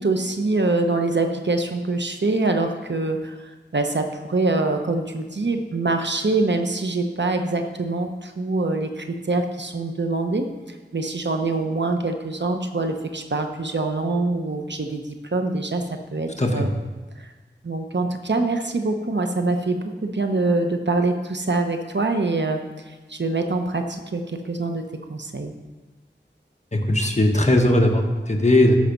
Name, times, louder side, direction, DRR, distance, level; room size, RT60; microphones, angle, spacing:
voice 1, 0.0-15.8 16.1-16.7 17.2-17.3 17.6-22.6 22.9-24.8 25.1-25.5, right 3 dB, 70° right, 5 dB, 1.0 m, -24 dB
voice 2, 26.7-28.8, left 1 dB, 35° left, 2 dB, 1.4 m, -18 dB
14.0 x 5.8 x 5.4 m, 1.2 s
wide cardioid pair, 55°, 19 cm